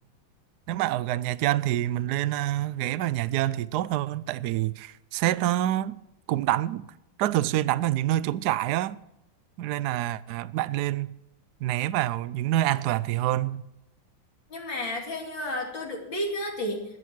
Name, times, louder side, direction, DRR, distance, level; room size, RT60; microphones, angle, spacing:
voice 1, 0.7-6.0 6.3-6.9 7.2-9.0 9.6-11.1 11.6-13.7, right 14 dB, 75° right, 0.9 m, -26 dB
voice 2, 14.5-16.8, left 1 dB, 65° left, 3.3 m, -32 dB
20.5 x 8.0 x 4.6 m
omnidirectional pair, 2.2 m